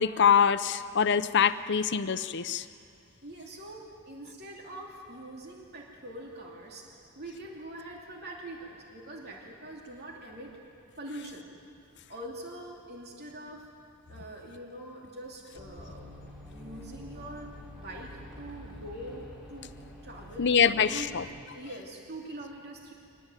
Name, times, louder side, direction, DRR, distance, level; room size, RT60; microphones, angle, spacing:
voice 1, 0.0-2.6 20.4-21.2, left 7 dB, 55° left, 13 dB, 0.7 m, -24 dB
voice 2, 3.2-10.6 11.0-11.5 12.1-13.7 14.1-17.5 17.8-19.7 20.0-21.1 21.5-22.9, right 1 dB, 50° right, -1 dB, 2.7 m, -44 dB
sound 1, 15.5-21.4, left 1 dB, 5° right, 5.2 m, -47 dB
24.5 x 19.0 x 9.1 m, 2.4 s
head